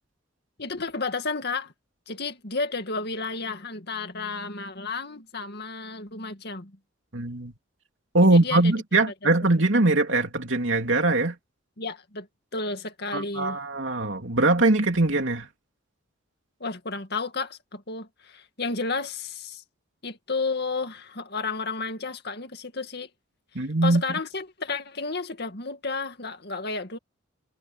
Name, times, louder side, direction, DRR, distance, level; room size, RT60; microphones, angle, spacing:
voice 1, 0.6-1.7 2.1-6.8 8.2-8.7 11.8-12.3 12.5-13.6 16.6-19.6 20.0-23.1 23.8-27.0, left 4 dB, 50° left, 2.3 m, -32 dB
voice 2, 7.1-7.5 8.1-11.4 13.1-15.5 23.5-24.0, right 2 dB, 65° right, 3.1 m, -22 dB
head